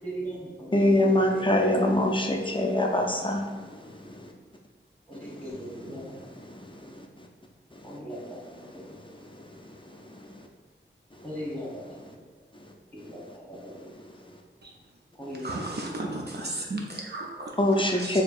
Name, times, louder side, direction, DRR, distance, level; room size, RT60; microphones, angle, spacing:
voice 1, 0.0-1.5 5.1-6.3 7.8-9.4 11.2-12.0 12.3-12.4 12.9-13.9 15.1-16.1, equal, 10° left, -5 dB, 1.2 m, -39 dB
voice 2, 0.7-3.4 17.6-18.2, left 1 dB, 25° left, 1 dB, 0.4 m, -23 dB
voice 3, 15.4-18.2, right 2 dB, 55° right, -1 dB, 0.5 m, -35 dB
4.4 x 2.8 x 2.4 m, 1.4 s
wide cardioid pair, 45°, 21 cm